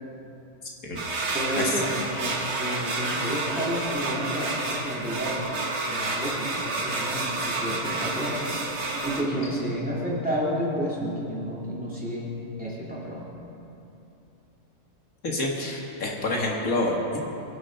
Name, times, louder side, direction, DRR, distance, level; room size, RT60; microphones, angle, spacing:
sound 1, 1.0-9.2, right 2 dB, 55° right, 1.7 m, -29 dB
voice 1, 1.3-5.4 5.9-8.5 9.0-12.3 12.6-13.3, equal, 5° right, -7 dB, 3.4 m, -31 dB
voice 2, 15.2-17.2, left 2 dB, 85° left, -1 dB, 2.3 m, -27 dB
24.0 x 8.0 x 5.7 m, 2.7 s
omnidirectional pair, 1.4 m